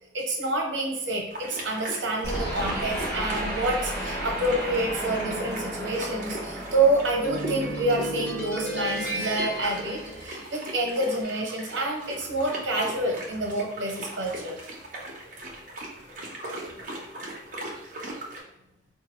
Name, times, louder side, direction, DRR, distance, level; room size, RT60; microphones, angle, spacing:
voice 1, 0.1-14.6, right 2 dB, 80° right, 1 dB, 0.9 m, -28 dB
sound 1, 1.3-18.4, right 1 dB, 45° right, 0.7 m, -39 dB
sound 2, 2.2-10.8, right 1 dB, 15° left, 1.4 m, -33 dB
4.5 x 2.6 x 3.0 m, 0.85 s
head